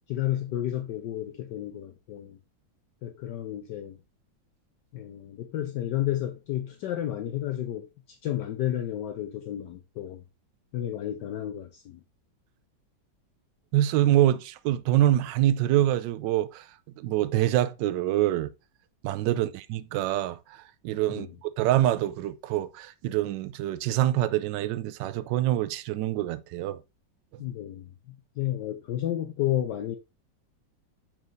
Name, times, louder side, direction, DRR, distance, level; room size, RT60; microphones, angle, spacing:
voice 1, 0.1-2.4 3.0-4.0 4.9-10.2 10.7-12.0 19.4-19.5 21.1-21.4 27.4-30.0, left 12 dB, 70° left, 1.2 m, -32 dB
voice 2, 13.7-16.6 17.0-18.5 19.0-26.8, right 13 dB, 75° right, 1.2 m, -25 dB
7.4 x 5.7 x 2.6 m
omnidirectional pair, 2.1 m